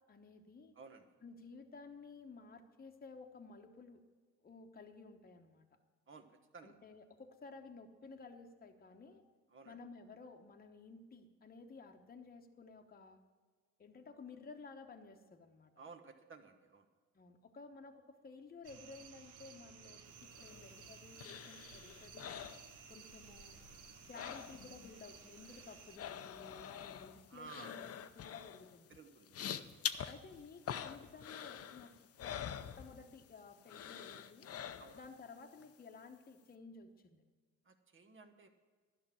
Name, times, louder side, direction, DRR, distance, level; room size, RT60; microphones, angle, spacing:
voice 1, 0.1-0.7 1.2-4.0 4.4-5.7 6.6-9.2 9.6-13.2 13.8-15.7 17.1-22.3 22.9-23.6 24.1-27.9 28.2-28.9 30.1-31.9 32.2-34.5 34.9-37.2, left 4 dB, 30° left, 4 dB, 1.0 m, -54 dB
voice 2, 0.7-1.1 6.1-6.8 9.5-9.8 15.8-16.9 27.3-27.7 28.9-29.7 34.8-35.0 37.6-38.5, right 5 dB, 40° right, 7 dB, 1.3 m, -55 dB
sound 1, 18.6-26.0, right 6 dB, 80° right, 1.1 m, -56 dB
sound 2, 20.2-23.3 23.5-24.9 25.2-33.3 33.7-35.2 35.6-35.7, left 9 dB, 50° left, 0.6 m, -46 dB
11.5 x 6.0 x 8.9 m, 1.5 s
cardioid pair, 90°, 30 cm